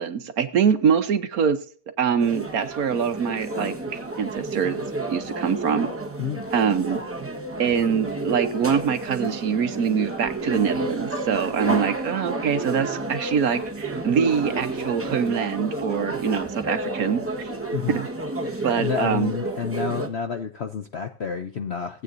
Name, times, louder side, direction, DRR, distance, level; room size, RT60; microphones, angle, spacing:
voice 1, 0.0-1.6 2.0-4.8 5.1-5.9 6.5-7.0 7.6-17.5 17.9-18.1 18.6-19.3, right 7 dB, 60° right, 1.3 m, -24 dB
sound 1, 2.2-20.1, right 2 dB, 10° right, 1.0 m, -31 dB
voice 2, 18.4-22.0, left 6 dB, 60° left, 0.7 m, -29 dB
17.5 x 8.6 x 2.6 m
omnidirectional pair, 1.9 m